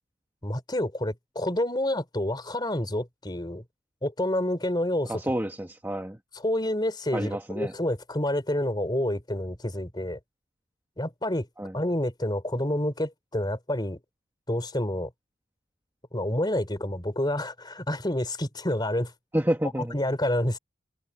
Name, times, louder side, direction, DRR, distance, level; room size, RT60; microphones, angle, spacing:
voice 1, 0.4-3.6 4.0-5.2 6.3-10.2 11.0-11.5 11.7-14.0 14.5-15.1 16.1-19.1 19.8-20.6, left 1 dB, 20° left, 3.7 m, -28 dB
voice 2, 5.1-6.2 7.1-7.7 11.6-11.7 19.3-19.9, right 1 dB, 10° right, 1.6 m, -29 dB
head